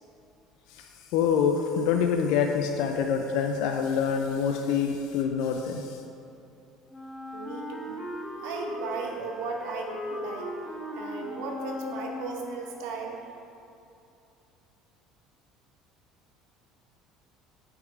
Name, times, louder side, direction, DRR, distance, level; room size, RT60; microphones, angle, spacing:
voice 1, 0.7-6.0, left 7 dB, 70° left, 4 dB, 0.3 m, -26 dB
Wind instrument woodwind instrument, 6.9-12.7, left 1 dB, 10° left, 1.0 m, -38 dB
voice 2, 7.3-8.1 8.4-10.5 11.0-13.2, right 4 dB, 75° right, 1 dB, 0.8 m, -36 dB
6.1 x 3.6 x 4.6 m, 2.7 s
supercardioid pair, 80°, 0 cm